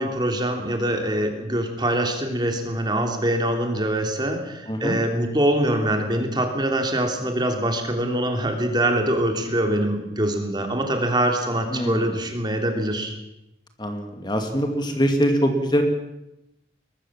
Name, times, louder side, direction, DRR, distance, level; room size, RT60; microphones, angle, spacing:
voice 1, 0.0-13.1, right 1 dB, 25° right, 4 dB, 3.2 m, -24 dB
voice 2, 11.7-12.2 13.8-15.8, equal, 25° left, 5 dB, 2.4 m, -23 dB
22.5 x 21.0 x 7.5 m, 0.88 s
head